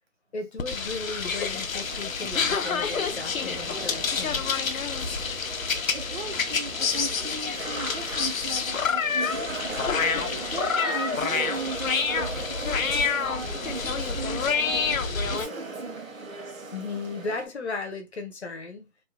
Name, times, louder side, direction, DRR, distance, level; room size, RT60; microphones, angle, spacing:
voice 1, 0.3-4.6 16.7-18.9, left 3 dB, 55° left, 0.8 m, -36 dB
sound 1, 0.6-15.4, left 5 dB, 90° left, 0.6 m, -28 dB
sound 2, 1.3-17.5, right 3 dB, 85° right, 1.0 m, -38 dB
voice 2, 5.9-16.1 16.4-16.5, right 4 dB, 50° right, 0.4 m, -38 dB
2.7 x 2.1 x 2.5 m
figure-of-eight pair, 165°, 40 cm